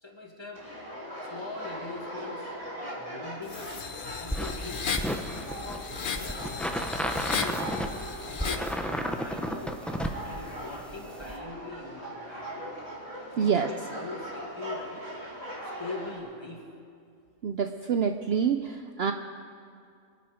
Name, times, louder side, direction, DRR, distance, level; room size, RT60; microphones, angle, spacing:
voice 1, 0.0-0.7 1.3-3.7 4.1-6.5 7.1-7.6 8.3-9.8 10.2-12.8 13.3-15.1 15.8-16.6, left 3 dB, 20° left, -1 dB, 2.0 m, -42 dB
sound 1, 0.5-16.2, equal, 25° right, 3.3 m, -41 dB
sound 2, 3.5-8.8, left 6 dB, 45° left, 0.9 m, -35 dB
sound 3, 4.3-11.4, equal, ahead, 0.6 m, -33 dB
voice 2, 13.4-13.7 17.4-19.1, right 7 dB, 60° right, 7 dB, 0.7 m, -26 dB
25.5 x 9.5 x 5.0 m, 2.4 s
omnidirectional pair, 1.3 m